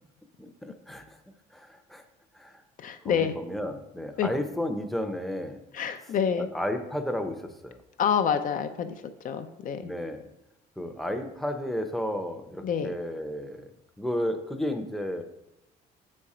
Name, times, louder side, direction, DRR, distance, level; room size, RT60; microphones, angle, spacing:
voice 1, 0.4-1.2 1.5-2.0 2.3-2.6 3.0-5.6 6.4-7.8 9.8-10.3 10.8-13.7 14.0-15.2, left 1 dB, ahead, 6 dB, 0.7 m, -33 dB
voice 2, 2.8-3.3 4.2-4.3 5.7-6.5 8.0-9.9 12.6-12.9, left 7 dB, 50° left, 8 dB, 0.5 m, -27 dB
6.7 x 4.3 x 4.9 m, 0.88 s
cardioid pair, 110°, 17 cm